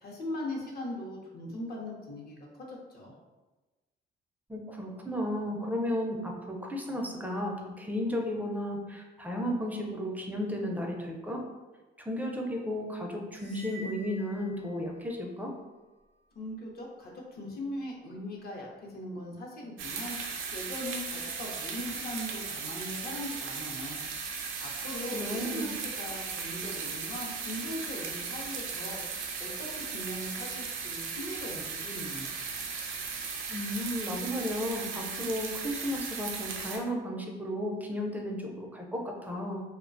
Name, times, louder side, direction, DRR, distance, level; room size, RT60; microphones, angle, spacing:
voice 1, 0.0-3.1 16.3-20.2 20.5-24.0 24.6-29.0 29.4-32.3, left 1 dB, 50° left, -2 dB, 0.6 m, -40 dB
voice 2, 4.5-11.4 12.1-15.5 25.1-25.7 33.5-39.6, left 1 dB, 10° right, 0 dB, 0.4 m, -34 dB
sound 1, 13.3-15.2, right 1 dB, 85° left, 1.0 m, -48 dB
sound 2, 19.8-36.8, right 5 dB, 85° right, 0.4 m, -37 dB
2.3 x 2.1 x 2.5 m, 1.2 s
cardioid pair, 90°, 20 cm